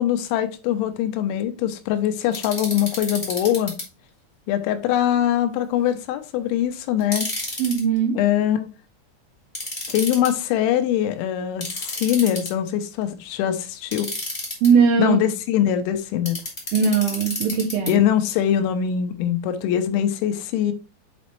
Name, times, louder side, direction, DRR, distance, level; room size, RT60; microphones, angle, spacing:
voice 1, 0.0-3.7 4.5-7.3 8.1-8.7 9.9-14.1 15.0-16.4 17.9-20.7, left 10 dB, 85° left, 3.1 m, -22 dB
sound 1, 2.3-3.8 7.0-7.8 9.5-10.3 11.6-12.7 13.9-14.7 16.3-17.9, left 1 dB, 55° left, 0.4 m, -30 dB
voice 2, 7.6-8.2 14.6-15.2 16.7-18.0, right 6 dB, 80° right, 2.1 m, -19 dB
7.6 x 4.1 x 3.1 m
omnidirectional pair, 5.3 m